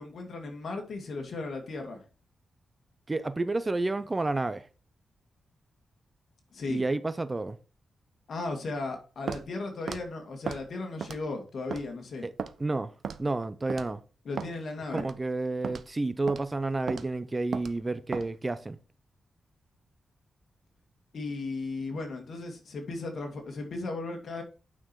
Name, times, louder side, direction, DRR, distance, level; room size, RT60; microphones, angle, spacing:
voice 1, 0.0-2.0 6.5-6.8 8.3-12.3 14.2-15.1 21.1-24.4, left 3 dB, 60° left, 2.4 m, -36 dB
voice 2, 3.1-4.7 6.7-7.6 12.2-12.3 12.6-12.9 13.2-14.0 14.9-18.8, right 2 dB, 20° right, 0.6 m, -30 dB
Walk footsteps, 9.3-9.5 9.9-10.0 10.5-10.6 11.0-11.3 11.7-11.8 12.4-12.5 13.0-13.3 13.7-13.9 14.4-14.5 15.0-15.2 15.6-15.9 16.3-16.4 16.9-17.1 17.5-17.7 18.1-18.3, right 6 dB, 60° right, 0.7 m, -35 dB
8.9 x 6.0 x 4.6 m
wide cardioid pair, 110°, 0 cm